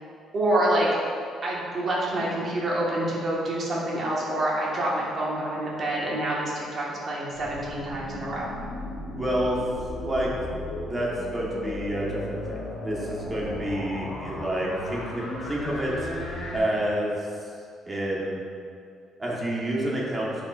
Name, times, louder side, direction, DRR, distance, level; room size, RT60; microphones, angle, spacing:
voice 1, 0.3-0.9 1.4-8.5, right 1 dB, 35° right, -5 dB, 1.5 m, -27 dB
sound 1, 7.3-16.6, left 1 dB, 50° left, 1.4 m, -36 dB
voice 2, 9.1-9.6 10.0-10.3 10.9-16.1 16.5-17.5 17.9-18.4 19.2-20.3, right 1 dB, 15° right, -5 dB, 1.3 m, -29 dB
10.0 x 5.0 x 2.5 m, 2.4 s
cardioid pair, 160°, 0 cm